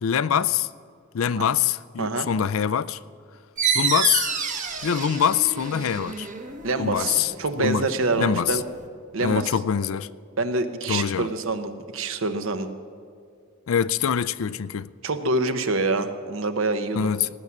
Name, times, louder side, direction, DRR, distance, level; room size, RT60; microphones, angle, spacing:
voice 1, 0.0-0.7 1.1-3.0 3.7-4.3 4.8-6.3 6.8-7.3 7.6-7.9 8.2-8.6 9.2-10.1 10.9-11.3 13.7-14.9 17.0-17.3, left 8 dB, 80° left, 0.4 m, -24 dB
sound 1, 3.6-8.8, right 6 dB, 40° right, 1.1 m, -29 dB
voice 2, 6.6-8.6 9.1-9.5 10.4-12.7 15.0-17.1, right 3 dB, 70° right, 1.0 m, -26 dB
17.0 x 9.7 x 7.3 m
head